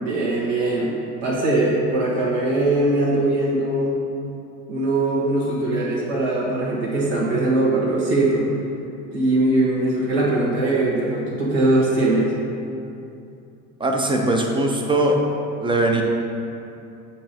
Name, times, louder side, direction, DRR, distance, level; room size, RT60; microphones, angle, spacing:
voice 1, 0.0-0.9 1.2-4.0 4.7-8.5 9.1-12.3, right 2 dB, 55° right, -6 dB, 1.5 m, -21 dB
voice 2, 13.8-15.2 15.6-16.0, right 2 dB, 10° right, 2 dB, 0.7 m, -20 dB
8.4 x 2.8 x 5.2 m, 2.7 s
figure-of-eight pair, 70°, 45 cm